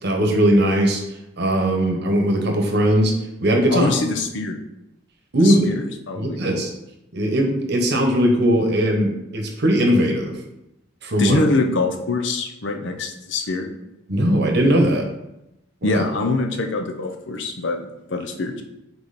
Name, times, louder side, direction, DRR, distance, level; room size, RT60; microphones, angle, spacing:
voice 1, 0.0-1.0 1.4-3.1 3.4-3.9 5.3-5.6 6.1-6.7 7.1-10.4 11.0-11.4 14.1-15.1 15.8-16.0, equal, 55° right, 2 dB, 1.0 m, -19 dB
voice 2, 3.7-4.6 5.3-6.7 11.2-13.7 15.8-18.6, left 3 dB, 60° left, 4 dB, 0.7 m, -24 dB
5.3 x 4.5 x 4.1 m, 0.89 s
head